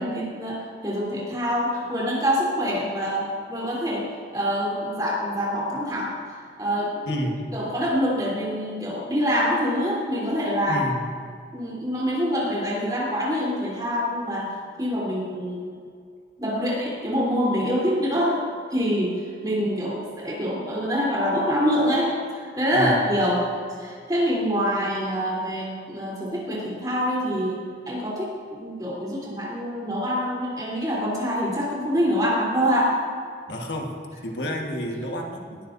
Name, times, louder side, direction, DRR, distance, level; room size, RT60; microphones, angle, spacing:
voice 1, 0.0-4.1 4.3-6.1 6.6-7.2 7.5-10.8 11.5-15.6 16.4-18.4 18.7-23.4 23.8-27.6 27.9-28.3 28.6-32.9, equal, 20° right, -5 dB, 3.5 m, -25 dB
voice 2, 7.1-7.6 10.7-11.1 22.7-23.0 33.5-33.9 34.2-35.6, equal, 70° left, 1 dB, 1.6 m, -30 dB
19.0 x 12.5 x 2.7 m, 2.1 s
head